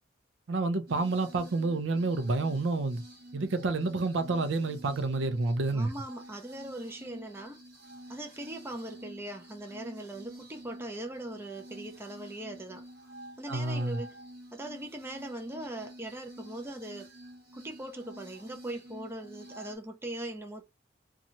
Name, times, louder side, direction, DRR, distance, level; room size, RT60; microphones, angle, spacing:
voice 1, 0.5-3.0 3.3-5.9 13.5-14.0, right 3 dB, 90° right, 0.5 m, -29 dB
sound 1, 0.9-19.8, right 1 dB, 55° right, 1.0 m, -49 dB
voice 2, 5.7-7.6 8.1-12.8 13.4-14.1 14.5-17.1 17.5-20.6, right 1 dB, 15° right, 0.5 m, -40 dB
2.7 x 2.3 x 2.8 m
head